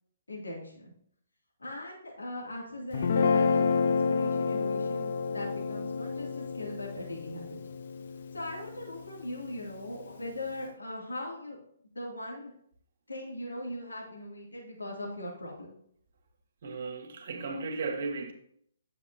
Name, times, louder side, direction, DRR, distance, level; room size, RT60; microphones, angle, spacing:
voice 1, 0.3-0.8 1.6-7.7 8.3-11.6 11.9-12.5 13.1-15.7, left 1 dB, 80° left, 2.7 m, -40 dB
Guitar, 2.9-9.3, left 5 dB, 50° left, 0.6 m, -29 dB
voice 2, 16.6-18.3, right 4 dB, 50° right, 1.7 m, -35 dB
9.9 x 7.6 x 2.8 m
figure-of-eight pair, 130°, 0 cm